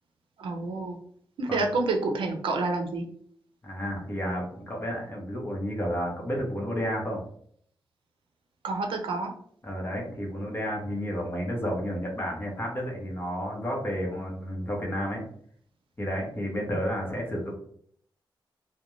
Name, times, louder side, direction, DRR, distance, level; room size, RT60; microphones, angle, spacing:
voice 1, 0.4-1.0 1.4-3.0 8.6-9.3, right 3 dB, 90° right, 3 dB, 0.5 m, -28 dB
voice 2, 3.6-7.2 9.6-15.3 16.0-17.5, equal, 25° left, -1 dB, 0.8 m, -31 dB
2.4 x 2.2 x 3.0 m, 0.64 s
wide cardioid pair, 95°, 9 cm